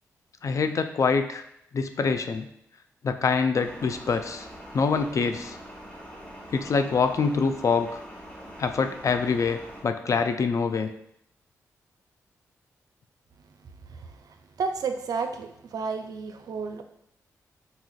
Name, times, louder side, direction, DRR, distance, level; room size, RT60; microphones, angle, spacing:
voice 1, 0.4-1.4 1.7-2.5 3.0-4.5 4.7-5.6 6.5-8.0 8.6-10.9, left 5 dB, 50° left, 8 dB, 0.3 m, -25 dB
sound 1, 3.6-9.8, equal, 25° left, 1.2 m, -44 dB
voice 2, 13.9-16.8, right 5 dB, 65° right, 6 dB, 0.4 m, -32 dB
4.1 x 2.5 x 2.3 m, 0.75 s
supercardioid pair, 40°, 7 cm